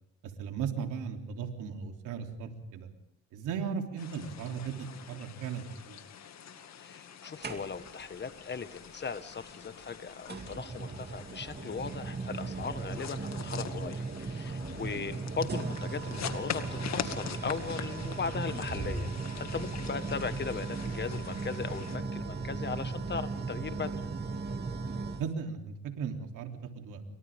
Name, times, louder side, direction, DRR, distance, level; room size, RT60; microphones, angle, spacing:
voice 1, 0.4-2.9 3.3-6.0 14.9-15.1 18.7-18.9 25.2-27.0, right 6 dB, 90° right, 3 dB, 3.3 m, -37 dB
sound 1, 4.0-22.0, left 8 dB, 60° left, 2.2 m, -44 dB
voice 2, 6.8-19.1 19.4-24.0, left 5 dB, 35° left, 11 dB, 1.6 m, -38 dB
sound 2, 7.4-8.1 9.4-9.5 10.3-25.3, right 4 dB, 35° right, 2.5 m, -37 dB
29.0 x 24.5 x 3.7 m, 0.72 s
cardioid pair, 90°, 30 cm